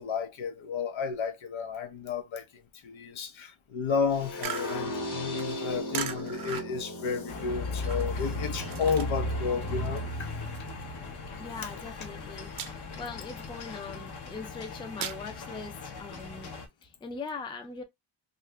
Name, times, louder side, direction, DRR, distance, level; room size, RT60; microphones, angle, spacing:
voice 1, 0.0-10.3 12.5-12.7, left 5 dB, 90° left, 0.9 m, -32 dB
sound 1, 4.1-10.1, left 1 dB, 40° left, 1.0 m, -38 dB
sound 2, 4.4-9.3 9.6-11.5 11.8-12.1 12.5-13.1 13.5-15.2, right 8 dB, 50° right, 0.5 m, -39 dB
sound 3, 7.3-16.7, left 2 dB, 55° left, 0.7 m, -37 dB
voice 2, 11.4-16.5 16.8-17.8, left 4 dB, 10° left, 0.3 m, -41 dB
2.7 x 2.4 x 3.2 m
wide cardioid pair, 175°, 46 cm